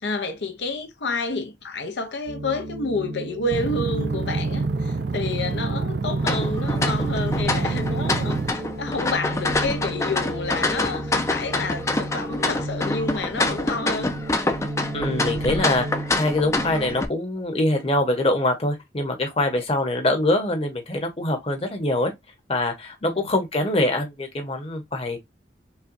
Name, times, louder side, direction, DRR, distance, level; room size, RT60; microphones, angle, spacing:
voice 1, 0.0-14.1 23.0-23.3, left 3 dB, 80° left, 0.7 m, -29 dB
sound 1, 2.3-17.0, right 1 dB, 35° right, 0.8 m, -32 dB
sound 2, 3.5-8.5, right 4 dB, 65° right, 0.4 m, -28 dB
sound 3, 6.2-17.1, left 2 dB, 15° left, 0.4 m, -26 dB
voice 2, 14.9-15.9 16.1-22.1 22.5-25.2, left 1 dB, 35° left, 0.9 m, -24 dB
5.6 x 2.2 x 2.5 m
head